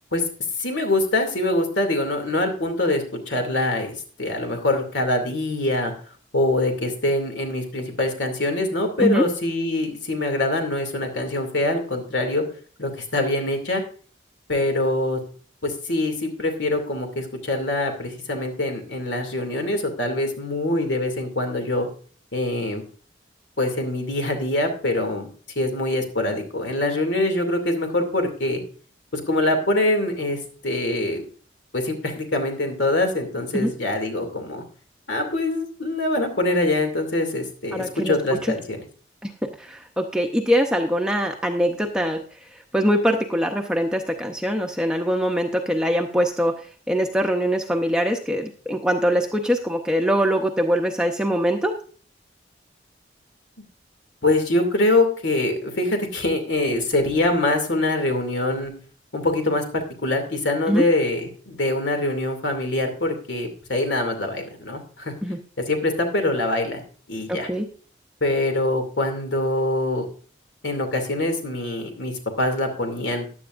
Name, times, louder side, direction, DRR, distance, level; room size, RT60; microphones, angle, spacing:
voice 1, 0.6-5.9 6.3-12.4 12.8-13.8 14.5-15.2 15.6-21.9 22.3-22.8 23.6-25.3 25.6-28.6 29.1-31.2 31.7-34.6 35.1-38.8 54.2-58.7 59.1-65.1 65.6-66.8 67.1-67.5 68.2-70.1 70.6-73.3, left 2 dB, 85° left, 5 dB, 2.5 m, -24 dB
voice 2, 37.7-38.1 39.2-42.2 42.7-51.7 60.7-60.8 65.2-65.4 67.3-67.7, equal, 5° right, 2 dB, 0.7 m, -23 dB
15.0 x 10.5 x 2.5 m, 0.41 s
head